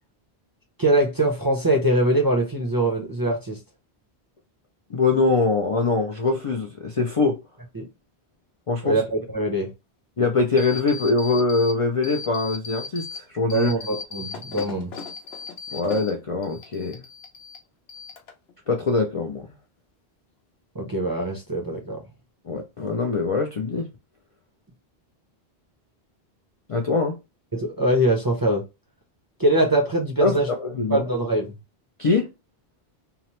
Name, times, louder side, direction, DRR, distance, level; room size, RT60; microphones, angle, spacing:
voice 1, 0.8-3.6 7.7-7.9 8.8-9.7 13.5-14.9 20.7-22.0 27.5-28.6 29.4-30.5 30.9-31.6, right 1 dB, 25° right, 0.5 m, -23 dB
voice 2, 4.9-7.4 8.7-9.0 10.2-13.7 15.7-17.0 18.7-19.5 22.5-23.9 26.7-27.1 30.2-31.0 32.0-32.3, left 3 dB, 50° left, 0.4 m, -23 dB
sound 1, 10.6-11.7 12.0-13.2 13.5-16.1 16.4-17.6 17.9-18.5, left 5 dB, 80° left, 0.9 m, -37 dB
2.8 x 2.0 x 2.9 m
omnidirectional pair, 1.0 m